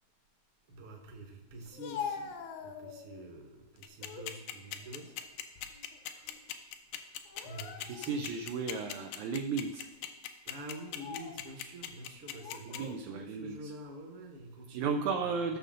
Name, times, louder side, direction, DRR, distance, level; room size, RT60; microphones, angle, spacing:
voice 1, 0.7-5.1 6.0-6.3 7.4-8.7 10.4-15.6, right 1 dB, 50° right, 2 dB, 1.9 m, -47 dB
Speech, 1.6-3.3 3.8-4.3 4.8-6.0 6.3-6.5 7.3-8.2 8.8-8.9 9.7-10.0 10.8-11.5 12.3-13.0, left 7 dB, 70° left, 1.9 m, -44 dB
sound 1, 3.8-12.8, left 12 dB, 85° left, 2.4 m, -39 dB
voice 2, 7.9-9.9 12.7-13.7 14.7-15.6, right 5 dB, 75° right, 3 dB, 1.9 m, -34 dB
16.0 x 6.6 x 3.8 m, 1.0 s
omnidirectional pair, 3.8 m